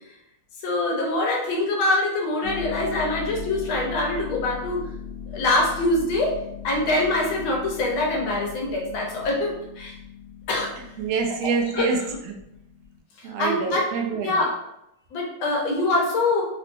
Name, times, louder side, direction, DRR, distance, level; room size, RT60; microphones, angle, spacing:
voice 1, 0.6-4.9 5.3-6.3 6.6-10.0 10.5-10.7 11.7-11.8 13.2-13.8 14.2-14.5 15.1-16.4, left 2 dB, 75° left, -1 dB, 1.5 m, -24 dB
Harp, 2.4-13.0, left 7 dB, 60° left, 0.7 m, -38 dB
voice 2, 11.0-12.0 12.3-12.4 13.2-14.5, right 5 dB, 80° right, 2 dB, 1.3 m, -26 dB
4.3 x 2.1 x 2.6 m, 0.82 s
omnidirectional pair, 2.3 m